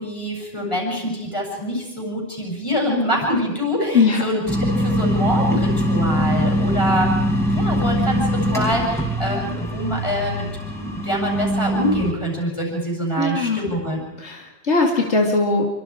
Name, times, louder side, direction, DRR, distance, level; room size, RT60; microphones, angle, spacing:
voice 1, 0.0-7.2 7.5-14.0, equal, 25° left, 0 dB, 7.9 m, -25 dB
sound 1, 4.5-12.1, equal, ahead, 4.5 m, -22 dB
voice 2, 13.2-13.6 14.2-15.6, left 3 dB, 85° left, 0 dB, 2.6 m, -19 dB
27.5 x 25.0 x 5.0 m, 0.97 s
omnidirectional pair, 1.1 m